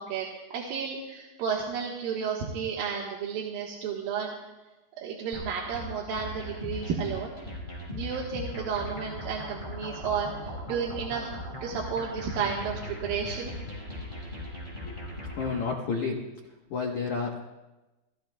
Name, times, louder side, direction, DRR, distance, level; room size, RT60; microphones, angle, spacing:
voice 1, 0.0-4.3 5.0-7.3 7.9-11.3 11.6-13.5, right 6 dB, 65° right, -3 dB, 2.7 m, -32 dB
sound 1, 5.3-15.6, left 1 dB, 10° left, 5.0 m, -39 dB
voice 2, 15.3-16.2 16.7-17.4, left 5 dB, 75° left, 0 dB, 1.7 m, -30 dB
29.5 x 15.5 x 2.3 m, 1.1 s
omnidirectional pair, 5.2 m